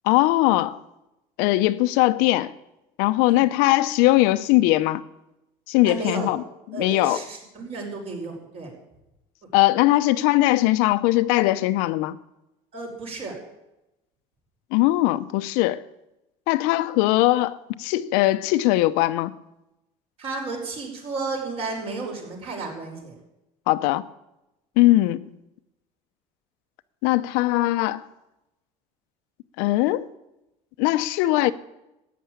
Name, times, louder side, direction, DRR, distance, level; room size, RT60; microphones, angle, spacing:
voice 1, 0.1-0.8 1.4-2.5 3.0-5.0 5.7-6.4 6.7-7.2 9.5-12.2 14.7-15.8 16.5-19.3 23.7-24.0 24.8-25.3 27.0-28.0 29.6-30.1 30.8-31.5, left 17 dB, 80° left, 0.7 m, -20 dB
voice 2, 5.8-6.3 6.7-8.7 12.7-13.4 20.2-23.1, right 3 dB, 45° right, 5.3 m, -32 dB
14.5 x 9.3 x 8.7 m
cardioid pair, 150°, 15 cm